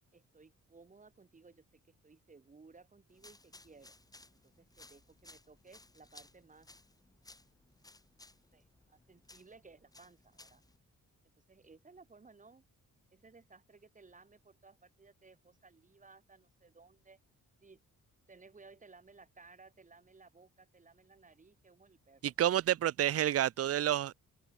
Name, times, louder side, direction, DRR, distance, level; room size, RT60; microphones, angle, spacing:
voice 1, 0.1-1.6 2.0-4.0 4.4-6.7 8.5-10.6 11.5-12.6 13.1-17.2 17.6-17.8 18.3-22.2, right 4 dB, 25° right, 5.4 m, -59 dB
sound 1, 3.1-10.8, left 2 dB, 10° left, 2.2 m, -60 dB
voice 2, 22.2-24.1, right 11 dB, 50° right, 0.4 m, -29 dB
open air
wide cardioid pair, 180°, 32 cm